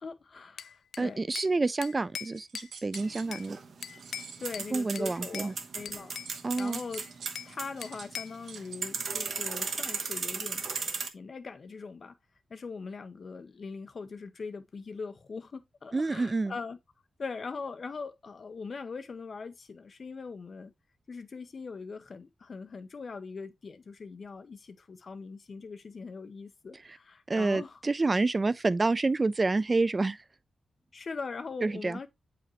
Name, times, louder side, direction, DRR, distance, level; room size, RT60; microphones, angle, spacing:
voice 1, 0.0-1.2 4.4-6.2 6.6-7.0 7.4-10.7 11.1-12.1 12.5-16.8 17.2-20.7 21.1-27.8 30.9-32.1, left 4 dB, 40° left, 0.7 m, -41 dB
Bell / Glass, 0.6-1.6 1.8-3.5 3.8-4.7 5.0-5.5 5.9-7.6 7.8-8.4, left 8 dB, 85° left, 0.3 m, -42 dB
voice 2, 1.0-3.6 4.7-5.5 6.4-6.8 15.9-16.5 27.3-30.2 31.6-32.1, right 3 dB, 25° right, 0.3 m, -28 dB
sound 1, 2.3-4.6 6.2-8.8, right 6 dB, 85° right, 0.9 m, -48 dB
sound 2, 3.0-11.1, right 5 dB, 55° right, 1.0 m, -37 dB
8.0 x 4.9 x 2.9 m
wide cardioid pair, 160°, 0 cm